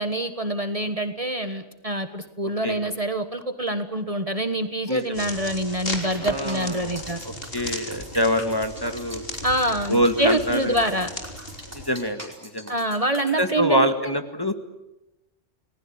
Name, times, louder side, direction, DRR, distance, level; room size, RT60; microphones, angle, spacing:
voice 1, 0.0-7.2 9.4-11.1 12.7-14.1, right 1 dB, 30° right, 8 dB, 1.5 m, -26 dB
voice 2, 4.9-5.3 6.2-7.0 7.5-9.2 9.9-10.8 11.9-12.7 13.4-14.5, equal, 20° left, 7 dB, 1.9 m, -25 dB
sound 1, 5.1-11.9, left 1 dB, 50° left, 3.7 m, -36 dB
sound 2, 6.0-13.5, equal, 10° right, 4.8 m, -42 dB
29.5 x 20.0 x 8.8 m, 0.94 s
omnidirectional pair, 1.3 m